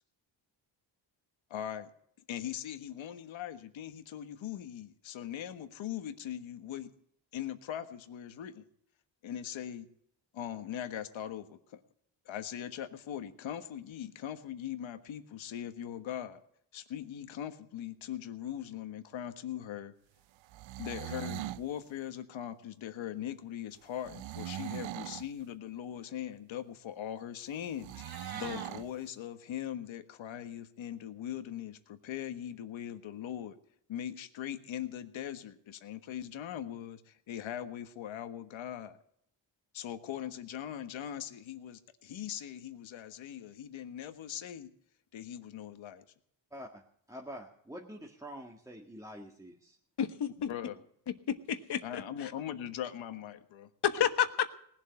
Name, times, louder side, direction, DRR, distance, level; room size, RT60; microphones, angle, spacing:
voice 1, 1.5-1.9 2.3-6.9 7.3-8.6 9.2-9.9 10.3-11.8 12.2-16.4 16.7-19.9 20.8-27.9 28.3-33.5 33.9-39.0 39.7-44.7 45.1-46.0 50.5-50.8 51.8-53.7, left 10 dB, 85° left, 9 dB, 1.5 m, -40 dB
sound 1, 20.4-21.7 24.0-25.3 27.8-28.9, right 15 dB, 80° right, 0.6 m, -41 dB
Meow, 27.7-28.7, right 5 dB, 50° right, 2.6 m, -45 dB
voice 2, 46.5-46.8 47.1-49.8, equal, 5° right, 0 dB, 1.7 m, -46 dB
voice 3, 50.0-50.5 51.3-52.3 53.8-54.5, left 9 dB, 60° left, 9 dB, 1.4 m, -30 dB
19.0 x 7.5 x 8.6 m, 0.68 s
cardioid pair, 110°, 46 cm